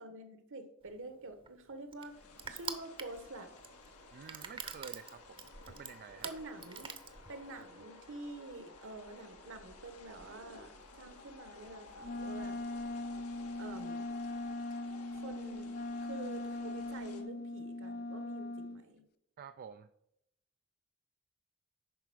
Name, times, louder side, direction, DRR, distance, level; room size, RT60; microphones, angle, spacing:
voice 1, 0.0-2.2 2.5-3.5 6.2-6.9 7.3-12.6 13.6-14.1 15.1-15.7 16.0-19.0, right 2 dB, 60° right, 9 dB, 1.3 m, -47 dB
Crushing, 0.9-7.7, right 5 dB, 25° right, 0.8 m, -46 dB
sound 1, 2.0-17.2, left 3 dB, 90° left, 1.5 m, -55 dB
voice 2, 4.1-6.3 19.4-19.9, right 7 dB, 45° right, 10 dB, 0.3 m, -50 dB
Wind instrument woodwind instrument, 12.0-18.8, left 2 dB, 45° left, 0.5 m, -40 dB
10.5 x 4.6 x 6.1 m, 0.80 s
head